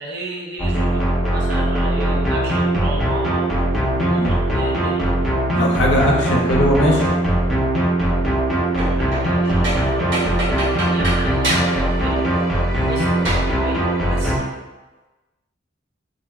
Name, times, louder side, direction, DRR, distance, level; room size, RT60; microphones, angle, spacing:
voice 1, 0.0-3.6 4.0-5.1 8.9-10.3 10.8-12.3 12.9-14.6, right 2 dB, 55° right, -2 dB, 0.5 m, -33 dB
sound 1, 0.6-14.4, right 1 dB, ahead, 0.5 m, -19 dB
voice 2, 5.5-7.1, equal, 60° left, -1 dB, 0.5 m, -19 dB
sound 2, 8.6-9.4 9.6-12.0 12.2-12.3 13.2-13.5, right 1 dB, 70° right, 1.0 m, -26 dB
2.6 x 2.0 x 3.3 m, 1.2 s
head